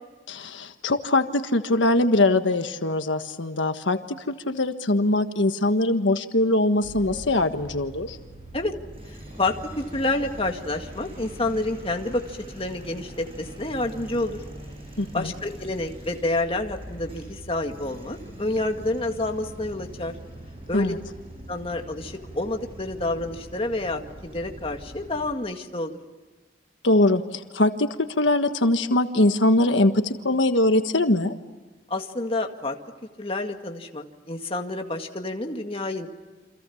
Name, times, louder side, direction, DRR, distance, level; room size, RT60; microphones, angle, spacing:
voice 1, 0.3-4.0 4.3-8.2 15.0-15.3 20.7-21.0 26.8-31.3, left 2 dB, 85° left, 7 dB, 1.5 m, -22 dB
sound 1, 6.8-25.3, right 1 dB, 30° right, 7.9 m, -42 dB
voice 2, 9.4-14.4 15.1-20.1 20.7-20.9 21.5-26.0 31.9-32.8 33.2-36.1, left 2 dB, 30° left, 4 dB, 2.1 m, -29 dB
29.5 x 26.5 x 7.2 m, 1.3 s
head